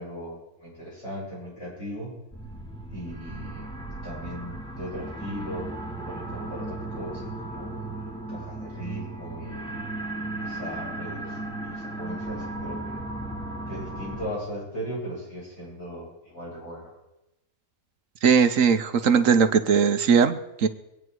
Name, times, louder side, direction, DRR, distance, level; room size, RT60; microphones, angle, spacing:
voice 1, 0.0-2.1 2.9-3.7 4.0-5.7 6.0-7.7 8.3-9.6 10.4-13.0 13.7-17.0, equal, 45° left, -7 dB, 8.2 m, -38 dB
sound 1, 2.3-14.3, right 2 dB, 5° left, 1.3 m, -36 dB
voice 2, 18.2-20.7, right 6 dB, 60° right, 9 dB, 1.3 m, -19 dB
24.5 x 9.6 x 4.7 m, 0.91 s
omnidirectional pair, 1.6 m